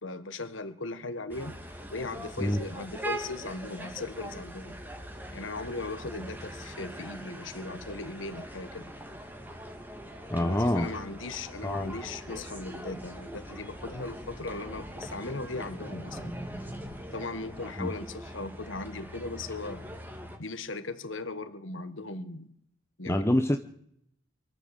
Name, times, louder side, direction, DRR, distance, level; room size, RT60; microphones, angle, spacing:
voice 1, 0.0-1.6 1.9-4.8 5.3-9.0 10.4-16.4 17.1-19.9 20.4-22.5 23.0-23.3, left 3 dB, 70° left, 11 dB, 1.6 m, -38 dB
sound 1, 1.3-20.4, equal, 10° right, 2.4 m, -42 dB
voice 2, 10.3-10.9 11.6-11.9 17.8-17.9 23.1-23.6, left 1 dB, 15° left, 7 dB, 0.9 m, -26 dB
24.5 x 13.0 x 8.2 m, 0.70 s
head